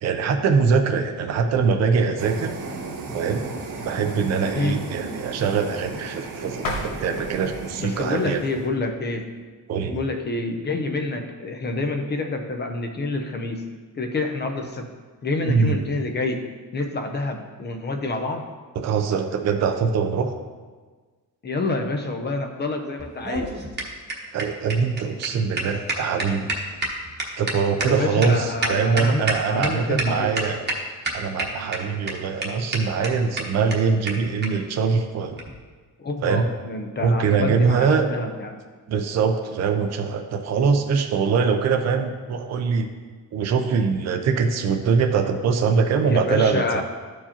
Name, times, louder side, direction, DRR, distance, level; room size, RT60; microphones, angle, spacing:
voice 1, 0.0-2.5 3.1-3.4 3.8-8.4 9.7-10.0 15.5-15.8 18.8-20.3 24.3-26.5 27.4-30.7 31.1-35.4 36.2-36.5 37.0-38.1 38.9-42.9 43.3-46.6, right 5 dB, 50° right, 5 dB, 0.6 m, -22 dB
sound 1, 2.2-8.7, right 3 dB, 70° right, 1.2 m, -35 dB
sound 2, 6.6-9.4, left 1 dB, 75° left, 1.3 m, -35 dB
voice 2, 7.8-9.3 9.9-13.6 13.9-14.9 15.2-16.4 16.7-18.4 21.4-23.5 27.8-30.4 36.0-38.6 46.0-46.8, left 2 dB, 30° left, 4 dB, 0.6 m, -27 dB
sound 3, 23.0-29.7 30.0-30.1 30.3-30.8 31.0-31.8 32.1-32.2 32.4-32.5 32.7-32.8 33.0-33.1 33.4-33.5 33.7-33.8 34.1-34.2 34.4-34.5 35.3-35.5, right 2 dB, 30° right, 1.1 m, -27 dB
13.5 x 4.6 x 2.9 m, 1.4 s
cardioid pair, 170°, 35 cm